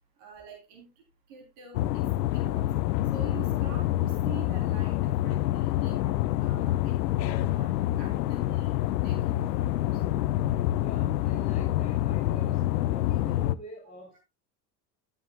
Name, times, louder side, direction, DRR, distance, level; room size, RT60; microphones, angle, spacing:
voice 1, 0.2-0.9 1.3-2.7 3.1-8.8 9.0-10.0, right 5 dB, 70° right, 3.3 m, -47 dB
sound 1, 1.7-13.6, left 14 dB, 80° left, 0.7 m, -27 dB
voice 2, 10.8-14.2, left 1 dB, 15° left, 4.2 m, -46 dB
13.5 x 8.7 x 2.2 m
hypercardioid pair, 65°, 49 cm